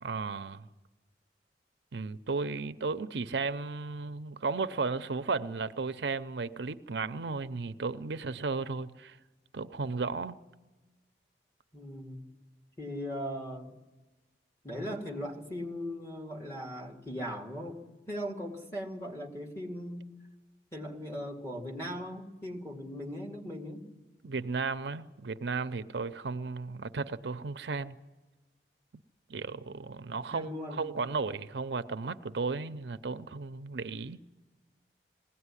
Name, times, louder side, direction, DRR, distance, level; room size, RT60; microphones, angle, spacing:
voice 1, 0.0-0.7 1.9-9.2 9.5-10.4 24.2-27.9 29.3-34.2, right 4 dB, 80° right, 0.6 m, -34 dB
voice 2, 11.7-12.3 12.8-13.8 14.6-20.1 20.7-23.9 30.1-30.8, equal, 15° left, 2.2 m, -39 dB
20.5 x 17.0 x 9.8 m
head